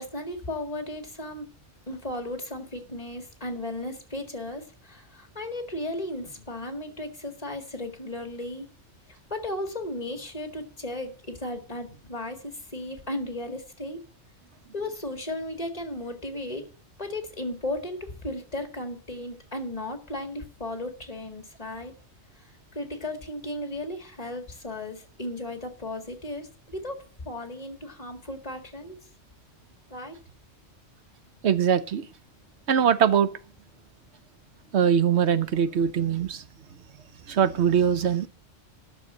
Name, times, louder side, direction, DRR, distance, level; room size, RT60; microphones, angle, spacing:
voice 1, 0.0-1.5 1.9-8.7 9.3-14.0 14.7-16.7 17.0-21.9 22.7-29.0 29.9-30.2, left 1 dB, 30° left, 2.1 m, -35 dB
voice 2, 31.4-32.1 32.7-33.3 34.7-36.4 37.3-38.3, right 8 dB, 65° right, 1.1 m, -22 dB
12.0 x 6.6 x 7.5 m
omnidirectional pair, 1.2 m